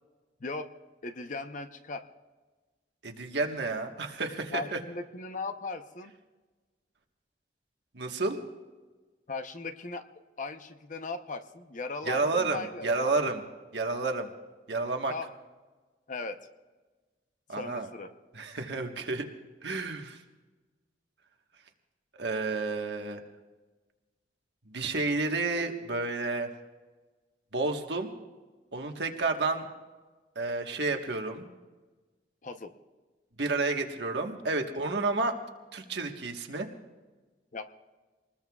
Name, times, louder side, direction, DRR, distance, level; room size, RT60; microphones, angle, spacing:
voice 1, 0.4-0.7 1.0-2.0 4.5-6.1 9.3-10.0 10.4-13.1 15.1-15.3 16.1-16.4 17.5-18.1 32.4-32.7 37.5-37.7, left 3 dB, 45° left, 7 dB, 0.8 m, -38 dB
voice 2, 3.0-4.8 7.9-8.4 12.1-13.4 13.7-14.3 14.7-15.1 17.5-17.9 18.3-19.2 19.6-20.2 22.1-23.2 24.7-26.5 27.5-28.1 28.7-29.7 30.3-31.4 33.4-35.4 35.7-36.7, right 3 dB, 70° right, 4 dB, 1.4 m, -30 dB
26.0 x 20.0 x 2.4 m, 1.3 s
head